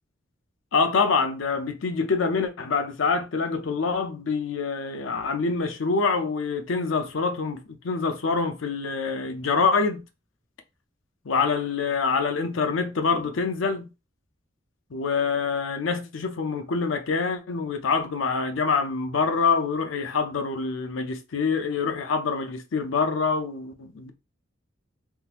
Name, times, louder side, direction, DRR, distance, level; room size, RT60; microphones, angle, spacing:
voice 1, 0.7-10.0 11.3-13.9 14.9-24.1, left 4 dB, 80° left, 0.5 m, -25 dB
3.6 x 2.4 x 2.8 m
head